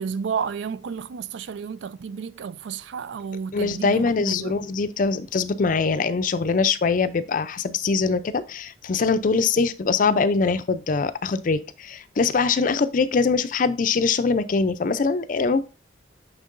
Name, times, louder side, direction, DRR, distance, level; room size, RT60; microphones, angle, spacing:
voice 1, 0.0-4.5, right 6 dB, 80° right, 0.4 m, -31 dB
voice 2, 3.5-15.6, left 4 dB, 45° left, 0.4 m, -23 dB
6.5 x 6.0 x 2.5 m
head